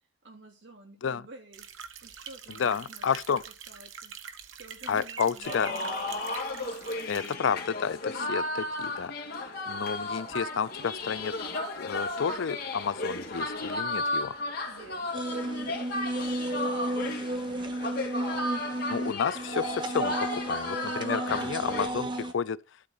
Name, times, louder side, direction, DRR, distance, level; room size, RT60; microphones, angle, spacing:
voice 1, 0.2-1.7 2.0-3.1 3.5-4.1 4.5-6.8 14.6-17.6, right 2 dB, 65° right, 2.8 m, -51 dB
sound 1, 1.5-7.4, right 7 dB, 85° right, 1.1 m, -45 dB
voice 2, 2.5-3.4 4.9-5.7 7.1-11.3 11.8-14.4 18.9-22.6, left 6 dB, 75° left, 0.4 m, -31 dB
sound 2, 5.4-21.9, left 2 dB, 50° left, 2.4 m, -34 dB
sound 3, 15.1-22.3, right 1 dB, 25° right, 1.0 m, -33 dB
12.0 x 4.0 x 8.0 m
head